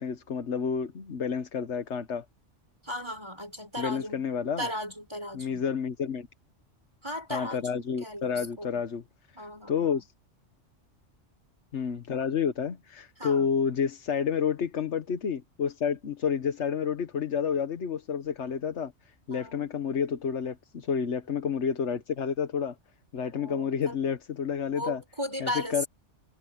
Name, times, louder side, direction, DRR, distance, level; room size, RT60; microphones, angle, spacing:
voice 1, 0.0-2.2 3.8-4.7 5.3-6.3 7.3-9.0 9.7-10.1 11.7-18.9 19.3-22.7 23.1-25.0 25.4-25.8, left 7 dB, 70° left, 1.4 m, -30 dB
voice 2, 2.8-4.3 4.6-5.6 7.0-8.8 9.3-10.0 13.2-13.5 19.3-19.7 23.3-24.0 24.7-25.9, equal, 20° right, 6.1 m, -36 dB
omnidirectional pair, 1.2 m